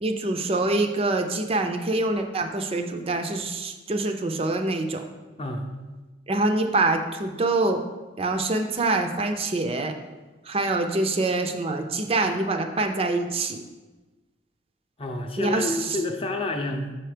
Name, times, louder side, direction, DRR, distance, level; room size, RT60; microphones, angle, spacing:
voice 1, 0.0-5.1 6.3-7.8 8.2-10.0 10.4-13.6 15.4-16.0, right 2 dB, 30° right, 6 dB, 0.4 m, -25 dB
voice 2, 15.0-17.0, left 2 dB, 30° left, 3 dB, 0.7 m, -29 dB
6.3 x 4.4 x 5.0 m, 1.2 s
head